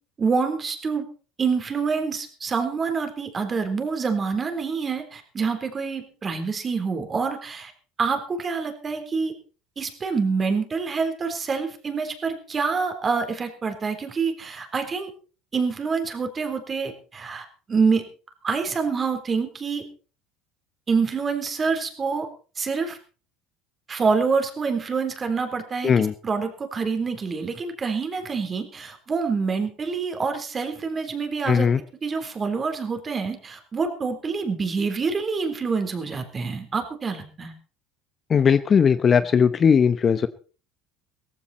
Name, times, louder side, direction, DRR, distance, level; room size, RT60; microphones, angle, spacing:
voice 1, 0.2-1.1 1.4-7.7 8.0-9.3 9.8-15.1 15.5-18.0 18.4-19.8 20.9-22.3 22.6-23.0 23.9-31.7 32.0-37.5, right 5 dB, 25° right, 6 dB, 3.7 m, -26 dB
voice 2, 31.5-31.8 38.3-40.3, left 6 dB, 30° left, 13 dB, 0.8 m, -18 dB
17.0 x 15.0 x 4.2 m, 0.37 s
supercardioid pair, 125°, 0 cm